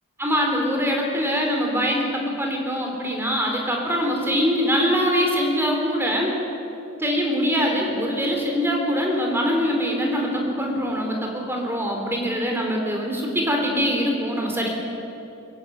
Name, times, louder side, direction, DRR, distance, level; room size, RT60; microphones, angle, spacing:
voice 1, 0.2-6.3 7.0-14.7, equal, 10° right, 1 dB, 3.7 m, -23 dB
23.0 x 16.0 x 9.3 m, 2.9 s
head